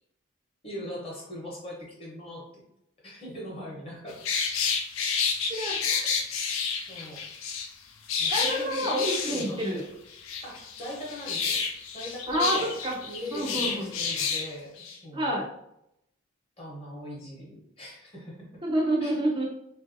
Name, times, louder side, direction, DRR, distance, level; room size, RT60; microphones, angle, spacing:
voice 1, 0.6-2.6 3.0-4.2 6.9-7.2 8.2-9.8 10.4-11.6 11.9-12.7 13.0-15.3 16.6-18.4 19.0-19.2, left 1 dB, 30° left, -3 dB, 0.9 m, -40 dB
sound 1, 4.1-7.7 8.1-9.8 10.1-14.5 14.8-15.0, left 5 dB, 80° left, 0.4 m, -30 dB
voice 2, 5.5-6.1 8.3-9.8 12.3-13.0 13.3-13.9 15.1-15.5 18.6-19.5, right 1 dB, 25° right, -1 dB, 0.3 m, -28 dB
3.1 x 2.5 x 2.6 m, 0.79 s
head